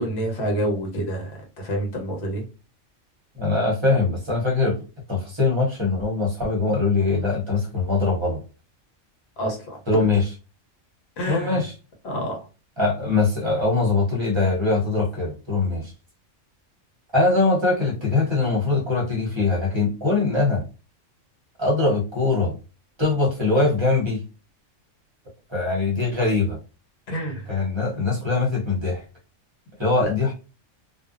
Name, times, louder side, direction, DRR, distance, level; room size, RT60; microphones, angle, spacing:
voice 1, 0.0-2.4 9.4-10.1 11.2-11.6 12.0-12.5 27.1-27.5 30.0-30.1, right 1 dB, 60° left, 1 dB, 1.1 m, -28 dB
voice 2, 3.3-4.8 5.1-8.4 9.9-10.3 11.3-11.7 12.8-15.9 17.1-20.6 21.6-22.6 23.0-24.2 25.5-26.6 27.5-29.0 29.8-30.3, left 3 dB, 25° right, -2 dB, 0.8 m, -22 dB
2.6 x 2.2 x 2.4 m, 0.33 s
omnidirectional pair, 1.3 m